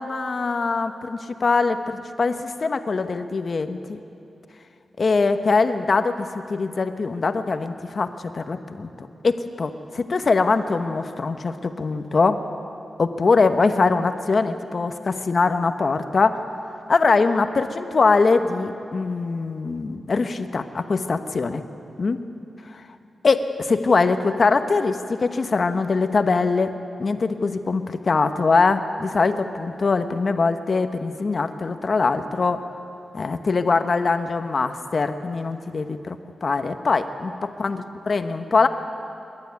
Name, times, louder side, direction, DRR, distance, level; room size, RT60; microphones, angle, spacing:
voice 1, 0.0-4.0 5.0-8.1 8.3-12.4 13.0-16.4 16.9-21.6 22.0-22.2 22.7-22.8 23.2-26.7 27.0-32.6 33.1-36.2 36.4-37.3 37.6-38.7, left 4 dB, 45° left, 9 dB, 1.1 m, -22 dB
26.5 x 12.0 x 9.4 m, 2.7 s
wide cardioid pair, 130°, 0 cm